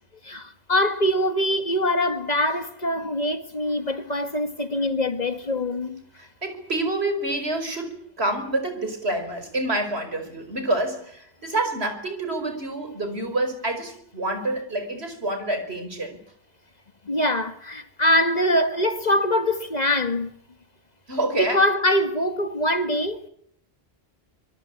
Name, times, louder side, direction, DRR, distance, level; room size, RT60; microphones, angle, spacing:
voice 1, 0.2-6.0 17.1-20.3 21.3-23.3, left 1 dB, 40° left, 1.9 m, -23 dB
voice 2, 6.2-16.2 21.1-21.6, right 2 dB, 80° right, 5.3 m, -27 dB
26.0 x 23.5 x 8.5 m
omnidirectional pair, 1.1 m